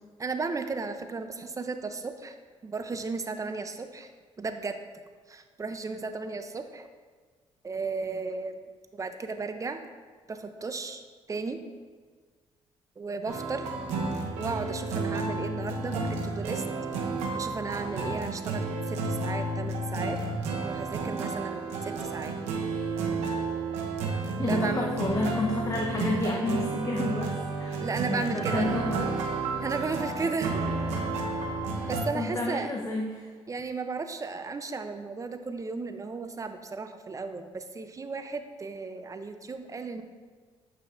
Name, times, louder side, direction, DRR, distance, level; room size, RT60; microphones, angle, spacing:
voice 1, 0.2-2.4 2.6-4.1 4.4-4.8 5.3-6.9 7.6-8.6 8.9-9.8 10.3-11.0 11.3-11.6 13.0-13.7 14.4-16.6 17.3-20.2 20.6-22.3 24.5-25.0 27.8-28.7 29.6-30.7 31.9-32.8 33.5-40.0, right 4 dB, 30° right, 8 dB, 0.6 m, -34 dB
sound 1, 13.3-32.1, right 3 dB, 85° right, 0.9 m, -31 dB
voice 2, 24.4-27.8 28.1-29.1 32.1-33.2, left 2 dB, 30° left, 0 dB, 0.8 m, -30 dB
8.6 x 5.6 x 2.5 m, 1.5 s
supercardioid pair, 70°, 11 cm